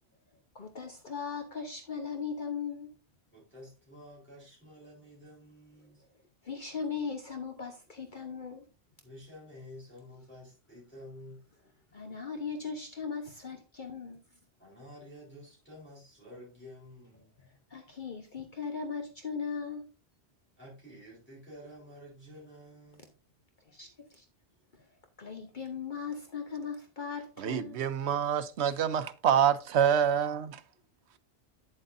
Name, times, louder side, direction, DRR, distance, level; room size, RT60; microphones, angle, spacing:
voice 1, 0.5-2.9 6.4-8.7 11.9-14.2 17.4-19.9 23.7-24.2 24.7-24.9 25.2-27.8, left 5 dB, 50° left, 1.1 m, -38 dB
voice 2, 3.3-6.0 9.0-11.4 14.6-17.3 20.6-23.1, equal, 10° left, 4.0 m, -50 dB
voice 3, 27.4-30.6, right 8 dB, 80° right, 1.0 m, -27 dB
9.4 x 7.6 x 2.6 m
omnidirectional pair, 1.1 m